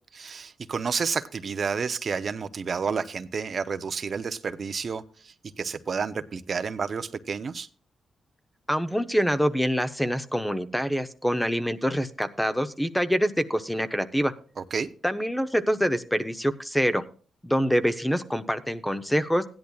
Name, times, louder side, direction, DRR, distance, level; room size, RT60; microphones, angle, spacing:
voice 1, 0.2-7.7 14.6-14.9, right 5 dB, 50° right, 11 dB, 0.6 m, -30 dB
voice 2, 8.7-14.3 15.0-17.0 17.4-19.5, equal, 5° left, 10 dB, 0.8 m, -25 dB
16.5 x 10.5 x 2.3 m, 0.41 s
cardioid pair, 80°, 0 cm